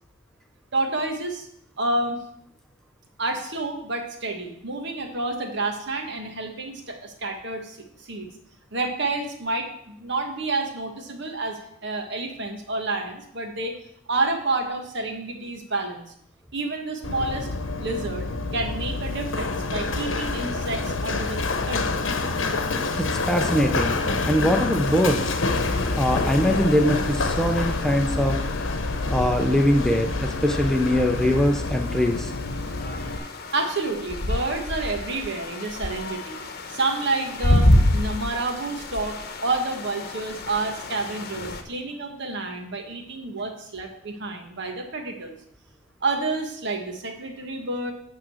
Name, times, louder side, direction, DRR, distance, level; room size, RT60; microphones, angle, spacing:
voice 1, 0.7-1.5 1.8-2.2 3.2-8.3 8.7-13.7 14.1-16.0 16.5-17.5 17.8-18.3 18.5-21.4 21.7-22.1 33.5-36.4 36.7-45.3 46.0-47.9, right 2 dB, 60° right, 4 dB, 1.5 m, -29 dB
Run, 17.0-33.2, left 3 dB, 75° left, 1.0 m, -27 dB
voice 2, 23.0-24.0 24.2-25.3 26.0-28.4 29.1-32.3, equal, 5° left, 4 dB, 0.6 m, -22 dB
sound 1, 24.8-41.6, left 1 dB, 50° left, 1.0 m, -29 dB
11.0 x 3.8 x 7.6 m, 0.72 s
head